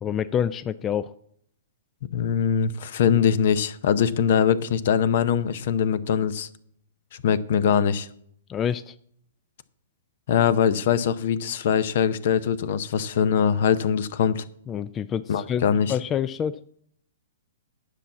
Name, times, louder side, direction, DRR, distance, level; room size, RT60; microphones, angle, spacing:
voice 1, 0.0-1.1 8.5-9.0 14.7-16.6, left 8 dB, 20° left, 14 dB, 0.4 m, -27 dB
voice 2, 2.1-6.5 7.2-8.1 10.3-14.4 15.3-15.9, left 8 dB, 60° left, 16 dB, 0.7 m, -22 dB
10.0 x 5.7 x 7.2 m, 0.68 s
hypercardioid pair, 120°, 0 cm